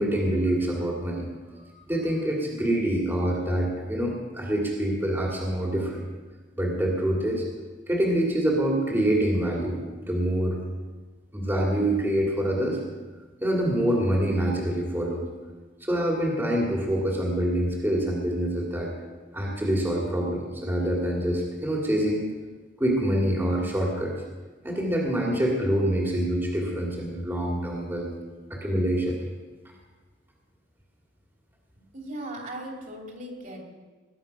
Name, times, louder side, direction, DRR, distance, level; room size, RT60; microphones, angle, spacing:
voice 1, 0.0-6.1 6.6-7.4 7.9-10.6 11.3-12.8 13.4-15.3 15.8-18.9 19.3-22.3 22.8-24.1 24.6-28.1 28.5-29.2, right 1 dB, 10° right, -2 dB, 2.4 m, -26 dB
voice 2, 31.8-33.6, right 1 dB, 45° right, 0 dB, 3.2 m, -38 dB
20.0 x 9.5 x 5.8 m, 1.3 s
head